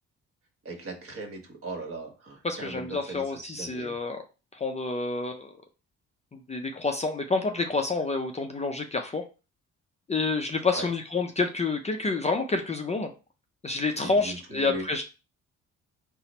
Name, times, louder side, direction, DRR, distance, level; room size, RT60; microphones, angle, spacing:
voice 1, 0.6-3.9 10.7-10.9 14.0-14.8, right 2 dB, 50° right, 1 dB, 1.3 m, -39 dB
voice 2, 2.4-4.2 4.5-5.5 6.3-9.2 10.1-13.1 13.6-15.0, left 3 dB, 20° left, 4 dB, 0.4 m, -28 dB
4.1 x 2.0 x 4.1 m, 0.32 s
cardioid pair, 90°, 30 cm